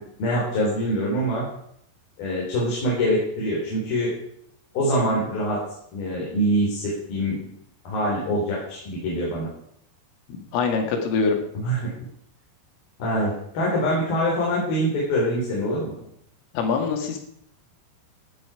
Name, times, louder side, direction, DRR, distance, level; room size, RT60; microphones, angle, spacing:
voice 1, 0.2-1.4 2.2-4.1 4.7-5.6 5.9-7.4 7.8-9.5 11.6-11.9 13.0-15.9, equal, 50° left, -5 dB, 5.6 m, -24 dB
voice 2, 10.3-11.4 16.5-17.2, left 5 dB, 85° left, 3 dB, 4.8 m, -24 dB
17.0 x 10.0 x 5.0 m, 0.71 s
omnidirectional pair, 5.6 m